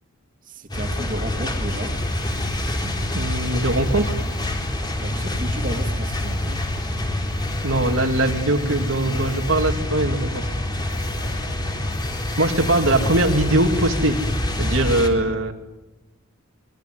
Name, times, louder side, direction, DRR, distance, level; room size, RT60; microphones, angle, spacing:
voice 1, 0.4-2.0 5.0-6.6, equal, 40° right, 4 dB, 2.7 m, -33 dB
sound 1, 0.7-15.1, left 1 dB, 20° left, 3.7 m, -26 dB
voice 2, 3.1-4.1 7.6-10.5 12.4-14.2 14.6-15.6, right 2 dB, 65° right, 3 dB, 2.5 m, -21 dB
25.5 x 22.5 x 9.5 m, 1.0 s
head